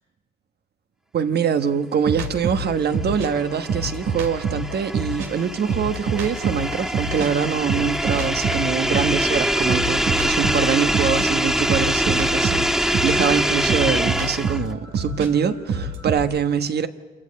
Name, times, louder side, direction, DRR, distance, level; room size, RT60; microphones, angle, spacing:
voice 1, 1.1-16.9, right 7 dB, 55° right, 1.4 m, -24 dB
sound 1, 2.1-5.3 5.6-9.2 9.7-16.2, right 3 dB, 85° right, 2.7 m, -27 dB
sound 2, 2.8-14.7, equal, ahead, 0.6 m, -24 dB
27.0 x 14.0 x 8.7 m
cardioid pair, 90°, 20 cm